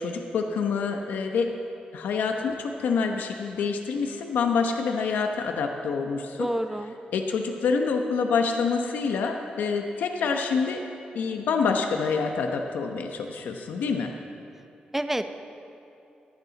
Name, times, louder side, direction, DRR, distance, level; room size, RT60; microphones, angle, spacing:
voice 1, 0.0-1.5 1.9-6.5 7.1-10.8 11.1-14.2, left 5 dB, 90° left, 4 dB, 1.0 m, -27 dB
voice 2, 6.4-6.9 14.9-15.3, right 1 dB, 10° right, 8 dB, 0.9 m, -28 dB
21.0 x 15.0 x 4.1 m, 2.7 s
cardioid pair, 90°, 3 cm